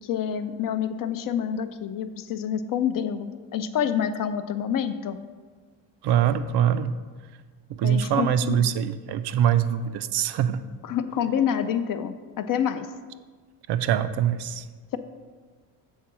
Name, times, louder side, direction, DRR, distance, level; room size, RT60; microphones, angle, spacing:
voice 1, 0.0-5.2 7.8-8.7 10.8-12.9, left 8 dB, 45° left, 10 dB, 0.4 m, -27 dB
voice 2, 6.0-6.9 7.7-10.6 13.7-14.7, right 9 dB, 60° right, 12 dB, 0.5 m, -23 dB
7.3 x 3.7 x 6.0 m, 1.5 s
cardioid pair, 105°, 47 cm